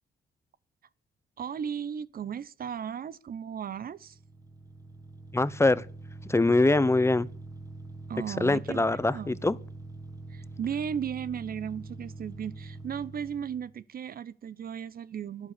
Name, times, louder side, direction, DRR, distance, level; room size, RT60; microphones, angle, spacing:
voice 1, 1.4-4.2 8.1-8.8 9.1-9.4 10.3-15.5, right 8 dB, 50° right, 0.7 m, -35 dB
sound 1, 3.9-13.7, right 2 dB, 20° right, 2.5 m, -44 dB
voice 2, 5.3-5.9 6.3-7.3 8.3-9.6, left 2 dB, 15° left, 0.8 m, -23 dB
11.5 x 11.0 x 8.5 m
cardioid pair, 90°, 20 cm